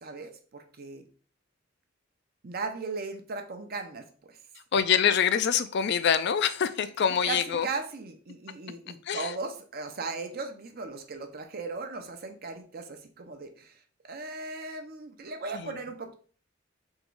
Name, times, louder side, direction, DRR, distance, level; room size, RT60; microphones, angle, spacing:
voice 1, 0.0-1.1 2.4-4.4 7.3-13.8 14.1-16.1, right 4 dB, 50° right, 6 dB, 0.7 m, -37 dB
voice 2, 4.7-7.7 9.1-9.3 15.5-15.8, left 7 dB, 60° left, 12 dB, 0.4 m, -25 dB
3.7 x 3.0 x 4.6 m, 0.42 s
head